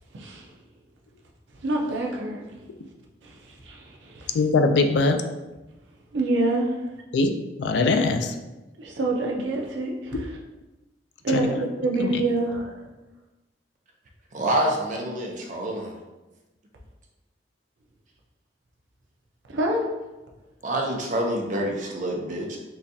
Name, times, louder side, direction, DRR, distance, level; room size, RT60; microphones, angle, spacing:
voice 1, 0.1-0.5 1.6-2.4 3.2-3.4 3.6-4.4 6.1-6.8 8.8-10.4 11.2-11.6 11.8-12.7 19.5-19.8, right 2 dB, 85° right, 0 dB, 0.6 m, -26 dB
voice 2, 4.3-5.2 7.1-7.3 7.6-8.3 11.3-11.5 12.0-12.1, left 3 dB, 65° left, 7 dB, 0.3 m, -21 dB
voice 3, 14.3-16.0 20.6-22.6, right 1 dB, 45° right, 0 dB, 0.6 m, -27 dB
4.0 x 2.3 x 2.6 m, 1.1 s
head